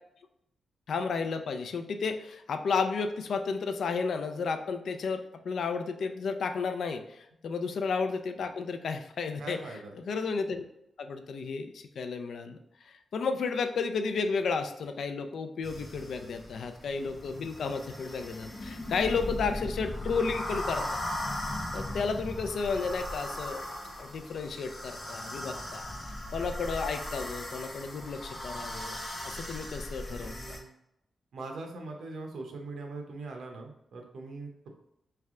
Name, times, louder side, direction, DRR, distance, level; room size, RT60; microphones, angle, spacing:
voice 1, 0.9-9.6 10.0-10.6 11.0-12.6 12.9-20.8 21.7-23.6 24.0-25.9 26.3-29.0 29.2-30.6, left 5 dB, 70° left, 7 dB, 0.4 m, -32 dB
voice 2, 9.4-9.9 30.1-30.7 31.3-34.7, right 3 dB, 80° right, 2 dB, 0.8 m, -41 dB
sound 1, 15.6-30.6, left 1 dB, 15° left, 1.1 m, -38 dB
3.3 x 3.2 x 3.6 m, 0.81 s
wide cardioid pair, 150°, 0 cm